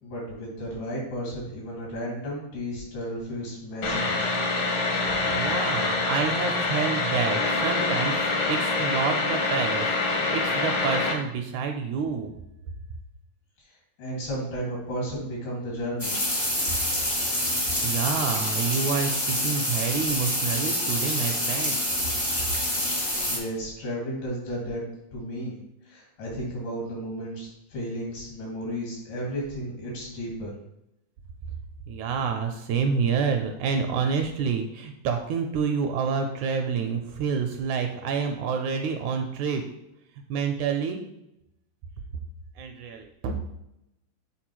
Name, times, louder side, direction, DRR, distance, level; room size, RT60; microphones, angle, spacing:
voice 1, 0.0-4.3 14.0-16.2 23.3-24.8 25.1-25.6 25.9-30.6, equal, 85° left, -3 dB, 4.0 m, -33 dB
sound 1, 3.8-11.1, left 3 dB, 65° left, 1.2 m, -25 dB
voice 2, 5.3-12.3 17.8-21.8 31.9-39.6 40.3-41.0 42.6-43.4, right 6 dB, 80° right, 4 dB, 1.8 m, -28 dB
sound 2, 16.0-23.4, left 1 dB, 45° left, 0.5 m, -27 dB
8.6 x 3.9 x 3.0 m, 0.84 s
omnidirectional pair, 3.7 m